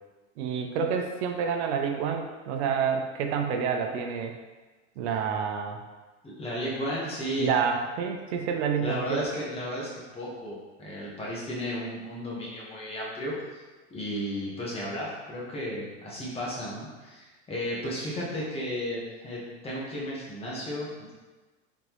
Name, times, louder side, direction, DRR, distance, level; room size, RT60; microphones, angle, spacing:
voice 1, 0.4-4.3 5.0-5.8 7.4-9.2, right 6 dB, 70° right, 4 dB, 0.6 m, -28 dB
voice 2, 6.2-7.5 8.8-13.4 13.9-21.1, equal, 15° left, -6 dB, 1.3 m, -34 dB
3.8 x 3.6 x 3.1 m, 1.3 s
supercardioid pair, 130°, 35 cm